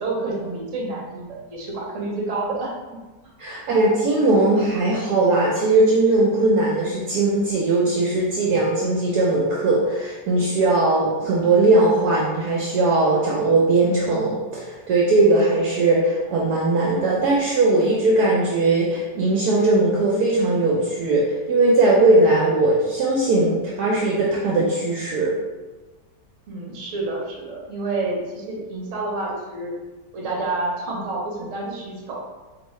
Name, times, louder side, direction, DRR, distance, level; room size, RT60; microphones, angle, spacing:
voice 1, 0.0-3.0 26.5-29.8 30.1-32.2, right 2 dB, 55° right, -3 dB, 1.2 m, -29 dB
voice 2, 3.4-25.3, right 2 dB, 75° right, -4 dB, 1.2 m, -19 dB
4.5 x 3.1 x 3.1 m, 1.2 s
omnidirectional pair, 1.8 m